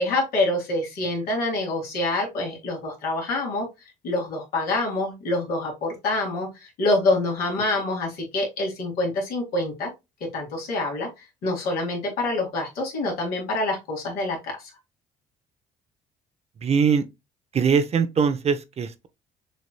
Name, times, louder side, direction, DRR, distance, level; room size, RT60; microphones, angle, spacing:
voice 1, 0.0-3.7 4.0-6.5 6.8-9.9 10.3-11.1 11.4-14.6, left 2 dB, 75° left, 2.2 m, -26 dB
voice 2, 16.6-17.1 17.5-19.1, right 6 dB, 40° right, 0.6 m, -22 dB
6.3 x 2.9 x 2.2 m
supercardioid pair, 70°, 16 cm